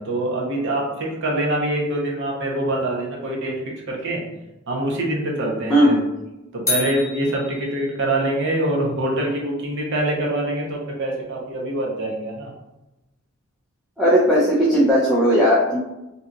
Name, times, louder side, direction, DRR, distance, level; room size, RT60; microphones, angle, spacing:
voice 1, 0.0-3.5 3.9-4.2 4.7-6.0 6.5-12.5, right 1 dB, 60° right, -2 dB, 0.7 m, -24 dB
sound 1, 6.7-8.3, left 3 dB, 15° left, 0.9 m, -28 dB
voice 2, 14.0-15.8, equal, ahead, -8 dB, 0.4 m, -16 dB
2.8 x 2.3 x 3.8 m, 0.98 s
head